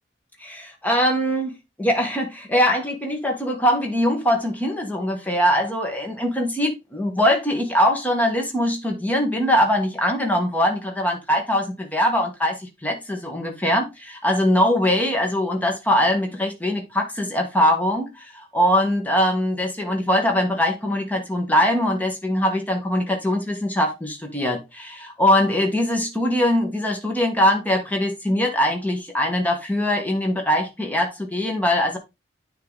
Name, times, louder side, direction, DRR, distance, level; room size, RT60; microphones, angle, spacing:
voice 1, 0.4-32.0, equal, 10° left, 1.4 m, -22 dB
9.3 x 3.9 x 3.9 m
head